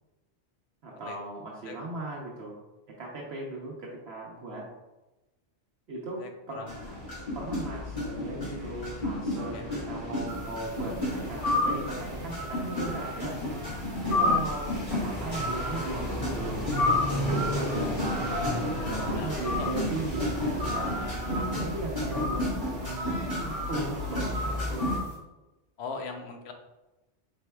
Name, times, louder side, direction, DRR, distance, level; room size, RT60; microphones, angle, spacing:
voice 1, 0.8-2.6 2.9-4.7 5.9-6.7 7.3-13.4 14.1-18.3 18.9-22.5 22.8-24.9, right 2 dB, 70° right, -3 dB, 0.9 m, -38 dB
voice 2, 6.2-6.7 9.5-9.6 14.1-14.2 19.1-19.7 25.8-26.5, left 4 dB, 70° left, 4 dB, 0.9 m, -39 dB
sound 1, 6.7-25.0, left 1 dB, 35° left, 1.6 m, -32 dB
sound 2, 10.3-25.1, left 2 dB, 15° right, 1.1 m, -34 dB
Bowed string instrument, 19.6-23.8, right 3 dB, 50° right, 0.5 m, -46 dB
4.4 x 4.3 x 2.2 m, 1.0 s
omnidirectional pair, 1.2 m